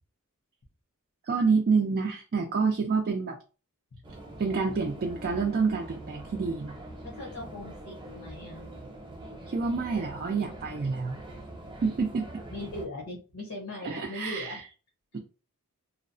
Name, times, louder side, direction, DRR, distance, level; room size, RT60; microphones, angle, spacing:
voice 1, 1.2-3.4 4.4-6.8 9.5-11.2 11.8-12.4 13.8-14.6, right 4 dB, 40° right, 0.3 m, -28 dB
sound 1, 4.0-12.9, right 1 dB, 20° right, 0.8 m, -43 dB
voice 2, 7.0-8.7 12.5-14.6 15.1-15.2, left 1 dB, 70° left, 0.8 m, -40 dB
2.7 x 2.0 x 2.6 m
head